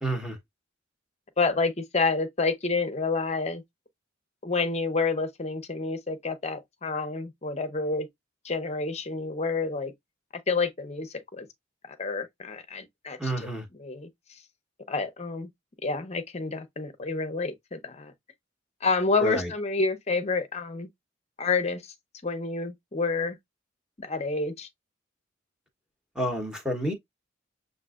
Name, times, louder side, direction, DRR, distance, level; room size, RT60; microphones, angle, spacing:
voice 1, 0.0-0.4 13.2-13.7 19.2-19.5 26.1-26.9, right 1 dB, 5° right, 1.0 m, -29 dB
voice 2, 1.4-3.6 4.4-8.1 8.4-9.9 10.5-11.5 12.0-13.2 13.8-14.1 14.9-15.5 15.8-18.1 18.8-20.9 21.4-21.9 22.2-23.4 24.0-24.7, left 3 dB, 35° left, 0.7 m, -28 dB
7.2 x 2.5 x 2.4 m
head